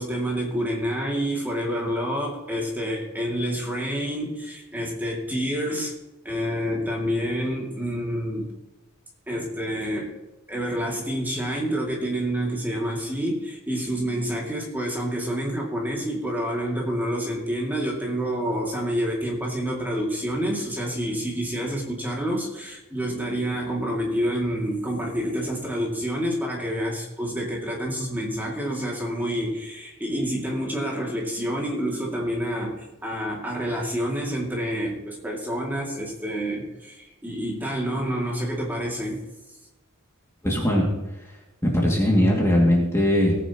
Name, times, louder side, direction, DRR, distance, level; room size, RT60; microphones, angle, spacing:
voice 1, 0.0-5.9 6.2-8.5 9.3-10.1 10.5-39.2, equal, 10° right, -3 dB, 2.5 m, -28 dB
voice 2, 40.4-40.9 41.6-43.4, equal, 15° left, -3 dB, 2.4 m, -20 dB
19.0 x 9.3 x 3.0 m, 1.0 s
head